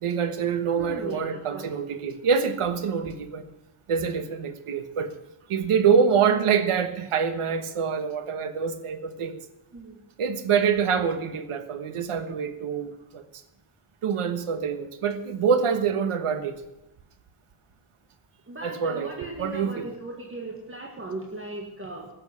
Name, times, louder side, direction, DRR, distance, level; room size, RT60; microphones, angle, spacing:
voice 1, 0.0-3.4 3.9-5.1 5.5-9.4 10.2-13.2 14.0-16.6 18.6-19.1 19.4-19.9, right 6 dB, 85° right, 9 dB, 1.4 m, -25 dB
voice 2, 0.8-1.7 9.7-10.0 18.5-22.1, right 2 dB, 25° right, 0 dB, 1.7 m, -37 dB
13.0 x 7.2 x 9.4 m, 0.91 s
wide cardioid pair, 140°, 50 cm